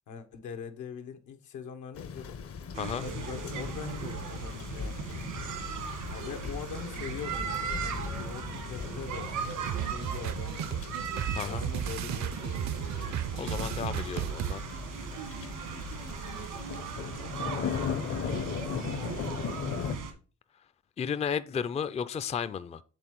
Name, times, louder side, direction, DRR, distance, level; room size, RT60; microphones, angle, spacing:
voice 1, 0.1-2.5 3.0-5.2 6.1-9.3 9.8-10.8 11.4-13.2 17.9-19.1, left 7 dB, 80° left, 1.0 m, -43 dB
sound 1, 1.9-20.0, left 6 dB, 50° left, 0.7 m, -39 dB
sound 2, 2.7-20.1, right 6 dB, 85° right, 1.6 m, -38 dB
sound 3, 9.7-14.5, right 10 dB, 65° right, 0.6 m, -34 dB
voice 2, 11.3-11.6 13.4-14.6 21.0-22.8, left 7 dB, 20° left, 0.4 m, -33 dB
8.0 x 3.5 x 4.6 m
cardioid pair, 90°, 30 cm